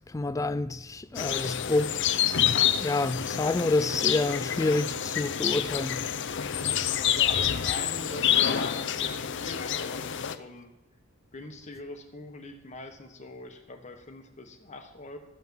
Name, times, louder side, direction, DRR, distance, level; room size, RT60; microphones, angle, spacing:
voice 1, 0.1-2.1 2.8-6.2, left 2 dB, 15° left, 0.3 m, -28 dB
sound 1, 1.1-10.3, left 9 dB, 60° left, 0.6 m, -28 dB
voice 2, 6.5-10.7 11.3-15.2, left 2 dB, 35° left, 1.2 m, -42 dB
13.5 x 5.7 x 7.7 m
head